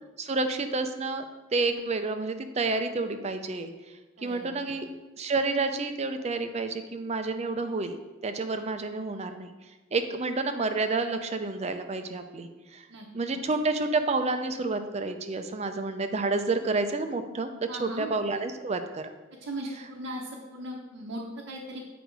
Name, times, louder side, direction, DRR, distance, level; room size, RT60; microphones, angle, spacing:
voice 1, 0.2-1.2 1.5-3.7 4.2-4.9 5.2-8.0 8.2-9.5 9.9-12.9 13.1-17.5 17.8-19.1, right 3 dB, 30° right, 8 dB, 0.5 m, -29 dB
voice 2, 4.2-4.5 12.9-13.1 13.3-13.4 17.7-18.1 19.4-21.8, right 1 dB, 75° right, -2 dB, 1.0 m, -38 dB
8.2 x 5.1 x 4.6 m, 1.2 s
head